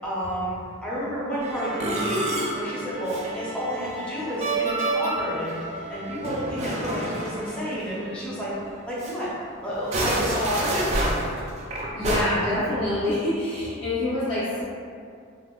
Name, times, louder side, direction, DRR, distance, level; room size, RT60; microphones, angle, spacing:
voice 1, 0.0-2.2 2.6-5.5 5.9-8.5 8.9-9.3 9.6-10.9, equal, 5° left, -9 dB, 0.6 m, -30 dB
Musical instrument, 1.4-8.3 8.5-8.7 9.0-9.1 9.7-12.2, right 1 dB, 30° right, 0.3 m, -29 dB
voice 2, 11.9-14.6, left 1 dB, 75° left, -13 dB, 0.8 m, -26 dB
3.9 x 2.1 x 2.4 m, 2.3 s
head